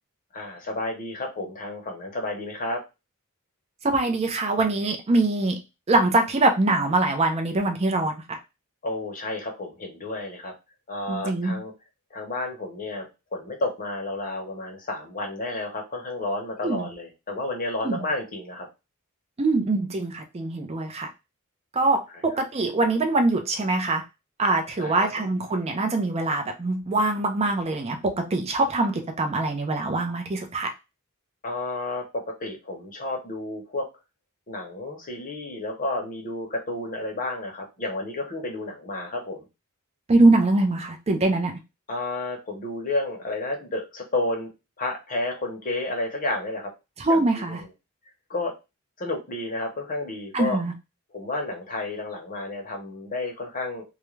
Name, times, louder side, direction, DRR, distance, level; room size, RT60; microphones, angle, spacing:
voice 1, 0.3-2.8 8.8-10.5 10.9-11.7 12.1-18.7 24.8-25.1 31.4-33.9 34.5-39.5 41.9-44.5 44.8-46.7 47.1-47.7 48.3-48.5 49.0-50.6 51.1-53.8, left 2 dB, 40° left, 2 dB, 0.8 m, -31 dB
voice 2, 3.8-5.6 5.9-8.4 11.1-11.6 16.6-16.9 17.8-18.0 19.4-21.1 21.7-24.0 24.4-30.7 40.1-41.5 47.0-47.6 50.3-50.7, right 2 dB, 30° right, 4 dB, 0.5 m, -23 dB
2.4 x 2.2 x 3.1 m, 0.26 s
head